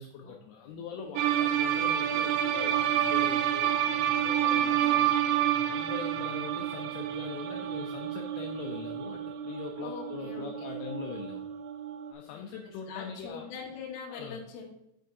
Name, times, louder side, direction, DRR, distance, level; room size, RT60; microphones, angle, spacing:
voice 1, 0.0-5.1 5.7-11.4 12.1-13.5 14.1-14.4, left 6 dB, 85° left, 2 dB, 2.2 m, -42 dB
sound 1, 1.2-12.1, right 10 dB, 90° right, 2.9 m, -29 dB
voice 2, 4.5-4.9 9.8-10.7 12.3-14.6, left 6 dB, 60° left, -2 dB, 2.8 m, -43 dB
10.5 x 4.6 x 2.6 m, 0.84 s
omnidirectional pair, 5.2 m